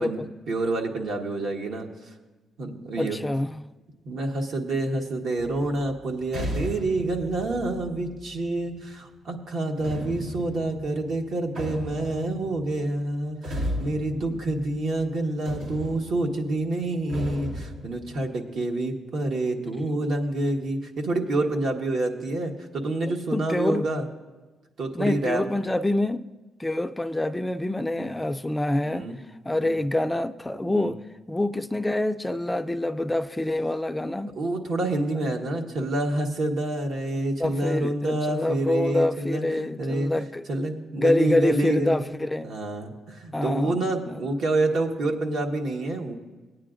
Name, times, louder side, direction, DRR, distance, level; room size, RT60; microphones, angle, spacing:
voice 1, 0.0-1.9 2.6-3.2 4.0-24.1 24.8-25.5 27.9-28.1 28.8-29.2 29.6-29.8 30.7-31.0 34.4-40.2 40.5-42.0 42.4-46.1, right 2 dB, 70° right, 1.3 m, -28 dB
voice 2, 3.0-3.7 23.3-23.9 25.0-26.2 26.6-29.1 29.4-31.0 31.3-34.3 37.4-40.4 41.0-42.5 43.3-44.2, left 1 dB, 10° left, 0.3 m, -26 dB
sound 1, 5.4-8.8 9.8-15.1 15.4-18.3, equal, 85° right, 2.2 m, -36 dB
18.0 x 9.3 x 2.5 m
cardioid pair, 90°, 0 cm